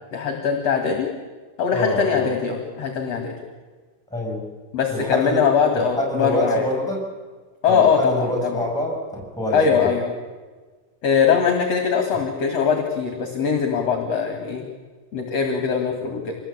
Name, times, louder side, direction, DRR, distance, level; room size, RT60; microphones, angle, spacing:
voice 1, 0.1-1.1 1.6-3.3 4.7-6.7 7.6-8.6 9.5-10.1 11.0-14.6 15.1-16.3, left 6 dB, 45° left, 4 dB, 2.8 m, -21 dB
voice 2, 1.7-2.3 4.1-4.4 4.9-7.0 7.7-9.9, left 1 dB, ahead, 0 dB, 6.7 m, -26 dB
26.0 x 19.5 x 8.6 m, 1.4 s
omnidirectional pair, 4.6 m